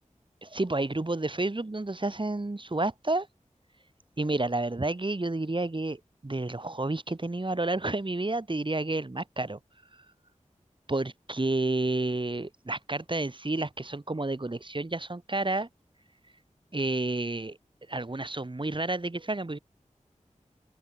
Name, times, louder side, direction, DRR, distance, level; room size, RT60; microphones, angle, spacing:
voice 1, 0.4-3.3 4.2-9.6 10.9-15.7 16.7-17.6 17.9-19.6, right 2 dB, 40° right, 4.0 m, -30 dB
open air
wide cardioid pair, 55°, 13 cm